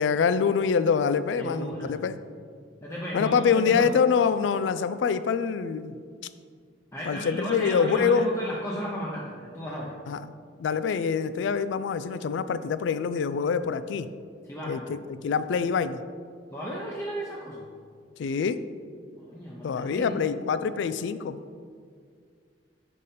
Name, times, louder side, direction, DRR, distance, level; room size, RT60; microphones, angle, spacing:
voice 1, 0.0-2.2 3.1-6.0 7.1-8.3 10.1-10.2 10.6-14.1 14.7-16.0 18.2-18.6 19.6-21.4, left 6 dB, 80° left, 13 dB, 0.3 m, -25 dB
voice 2, 1.4-2.0 2.8-3.4 3.7-3.9 6.9-10.0 14.4-14.9 16.5-17.6 19.2-20.2, equal, 15° left, -4 dB, 0.7 m, -34 dB
6.5 x 5.4 x 4.2 m, 2.1 s
head